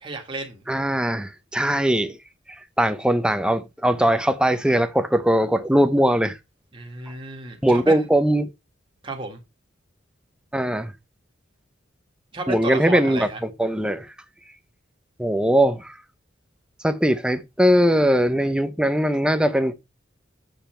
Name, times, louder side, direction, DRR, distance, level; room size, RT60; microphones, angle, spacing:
voice 1, 0.0-0.6 6.7-8.1 9.0-9.4 12.3-13.4, right 2 dB, 25° right, 1.7 m, -32 dB
voice 2, 0.7-2.2 2.5-6.4 7.6-8.5 10.5-10.9 12.5-14.1 15.2-16.0 16.8-19.7, equal, 5° right, 0.7 m, -20 dB
7.3 x 6.9 x 4.4 m
head